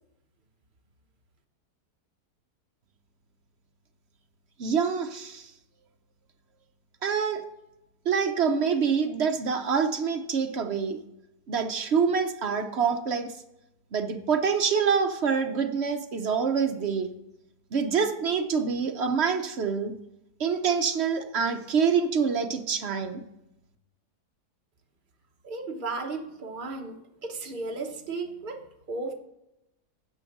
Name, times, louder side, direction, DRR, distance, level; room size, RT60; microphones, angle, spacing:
voice 1, 4.6-5.5 7.0-7.4 8.1-11.0 11.5-13.3 13.9-17.1 17.7-19.9 20.4-23.2, right 6 dB, 50° right, 5 dB, 0.8 m, -26 dB
voice 2, 25.4-29.1, right 3 dB, 35° right, 2 dB, 1.1 m, -35 dB
9.8 x 6.3 x 5.9 m, 0.87 s
omnidirectional pair, 1.8 m